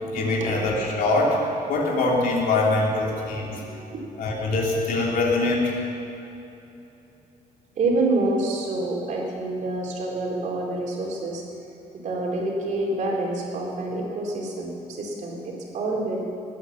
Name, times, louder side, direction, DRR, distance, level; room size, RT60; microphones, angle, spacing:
voice 1, 0.0-3.6 4.2-5.7, left 2 dB, 70° left, -2 dB, 3.4 m, -23 dB
voice 2, 3.1-4.0 5.4-5.5 7.8-11.4 11.9-16.2, right 2 dB, 55° right, -2 dB, 3.6 m, -27 dB
19.5 x 8.8 x 7.2 m, 2.9 s
cardioid pair, 130°, 15 cm